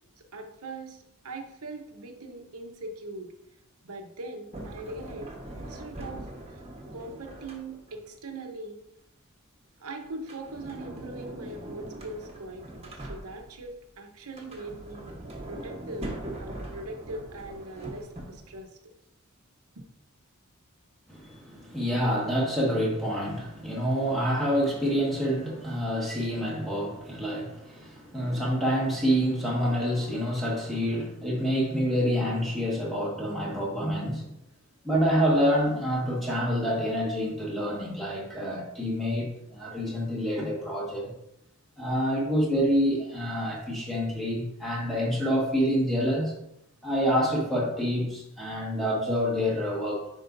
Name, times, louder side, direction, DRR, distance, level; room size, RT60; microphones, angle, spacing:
voice 1, 0.2-3.3 3.8-6.6 6.9-8.8 9.8-15.2 15.5-16.1 16.4-18.9 19.8-19.9, right 2 dB, 90° right, 3 dB, 1.0 m, -41 dB
Sliding door, 4.5-8.1 10.1-13.7 14.2-18.6, right 1 dB, 30° right, 1.3 m, -41 dB
voice 2, 21.1-34.3 34.8-41.1 41.8-46.3 46.8-50.0, equal, ahead, -4 dB, 1.7 m, -27 dB
9.7 x 4.8 x 2.7 m, 0.79 s
head